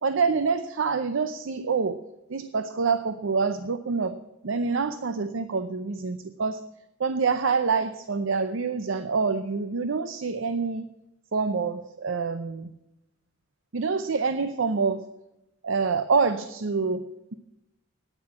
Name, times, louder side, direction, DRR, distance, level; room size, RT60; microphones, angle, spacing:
voice 1, 0.0-2.0 2.3-4.2 4.4-6.6 7.0-10.9 11.3-12.7 13.7-15.0 15.6-17.3, right 4 dB, 65° right, 11 dB, 0.6 m, -26 dB
9.6 x 9.2 x 8.7 m, 0.92 s
head